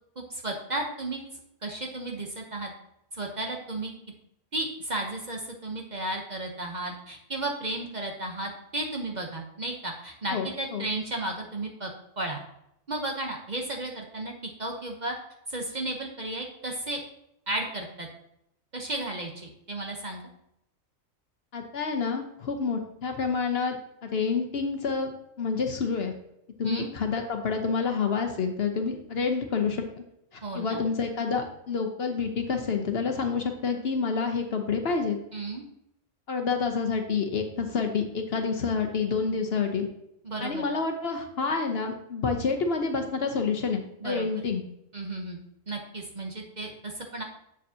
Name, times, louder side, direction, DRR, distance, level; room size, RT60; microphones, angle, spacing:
voice 1, 0.2-1.2 1.6-2.7 3.1-3.9 4.5-11.9 12.2-12.4 12.9-14.3 14.6-15.2 15.5-17.0 17.5-18.1 18.7-20.2 26.6-26.9 30.4-30.8 35.3-35.6 40.2-40.7 44.0-44.3 44.9-45.4 45.7-47.2, right 2 dB, 40° right, 2 dB, 0.9 m, -33 dB
voice 2, 10.3-10.8 21.5-23.8 24.0-25.1 25.4-26.1 26.6-30.0 30.3-35.2 36.3-39.9 40.4-44.6, left 5 dB, 55° left, 4 dB, 0.9 m, -28 dB
7.4 x 6.9 x 2.7 m, 0.79 s
omnidirectional pair, 1.4 m